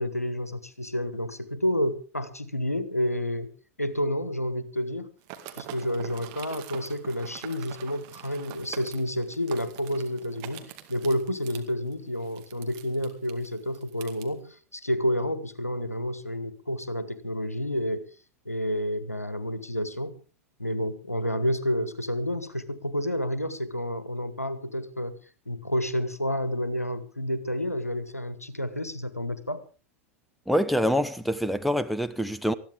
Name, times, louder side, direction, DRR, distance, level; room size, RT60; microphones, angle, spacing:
voice 1, 0.0-3.5 3.8-5.1 5.6-18.1 18.4-20.2 20.6-25.1 25.5-29.7, equal, 90° left, 1.2 m, -30 dB
sound 1, 5.2-14.3, right 12 dB, 45° right, 2.3 m, -45 dB
voice 2, 30.5-32.5, equal, ahead, 0.8 m, -25 dB
20.5 x 14.5 x 3.7 m
figure-of-eight pair, 90°, 8 cm